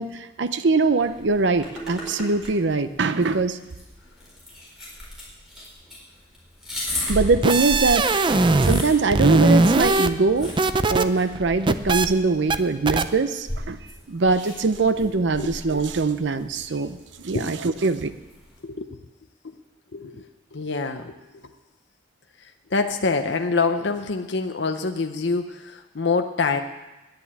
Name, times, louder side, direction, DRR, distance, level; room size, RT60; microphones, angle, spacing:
voice 1, 0.0-3.6 7.1-8.1 8.6-10.6 10.9-13.8 14.1-17.0 17.2-18.1, right 3 dB, 70° right, 11 dB, 0.6 m, -22 dB
sound 1, 1.0-18.6, left 1 dB, ahead, 4.3 m, -36 dB
sound 2, 7.2-8.8 9.1-11.0 11.3-12.1 12.5-12.6 12.9-13.0, right 2 dB, 25° right, 0.5 m, -20 dB
voice 2, 18.6-19.0 19.4-19.5 19.9-21.5 22.4-26.6, left 4 dB, 70° left, 5 dB, 0.7 m, -26 dB
10.5 x 10.5 x 8.5 m, 1.1 s
head